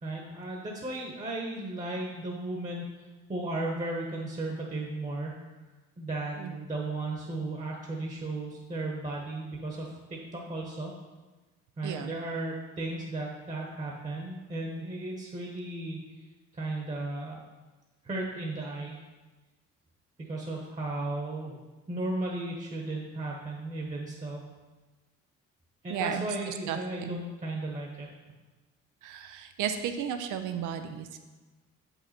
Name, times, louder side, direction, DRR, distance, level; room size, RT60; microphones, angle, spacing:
voice 1, 0.0-5.3 6.0-10.9 11.8-16.0 16.5-17.4 18.0-19.0 20.2-21.6 21.9-24.4 25.8-28.1, right 2 dB, 25° right, -1 dB, 1.1 m, -35 dB
voice 2, 11.8-12.1 25.9-27.1 29.0-31.2, right 8 dB, 85° right, 8 dB, 0.6 m, -34 dB
7.0 x 5.5 x 4.3 m, 1.2 s
cardioid pair, 90°, 30 cm